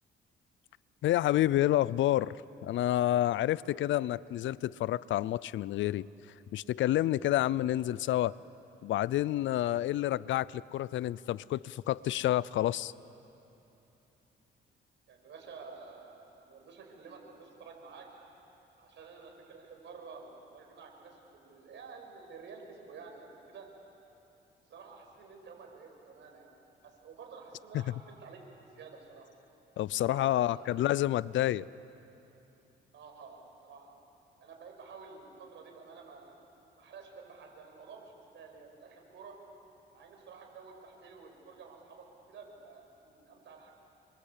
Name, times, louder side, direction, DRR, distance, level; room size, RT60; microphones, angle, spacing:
voice 1, 1.0-2.3 2.6-6.1 6.5-8.3 8.8-12.9 29.8-31.7, left 13 dB, 75° left, 21 dB, 0.5 m, -29 dB
voice 2, 15.1-18.1 18.8-23.7 24.7-29.3 30.1-30.8 32.9-33.9 34.4-36.3 36.8-39.4 39.9-43.7, right 5 dB, 70° right, 2 dB, 5.9 m, -51 dB
28.5 x 23.0 x 8.4 m, 3.0 s
cardioid pair, 90°, 20 cm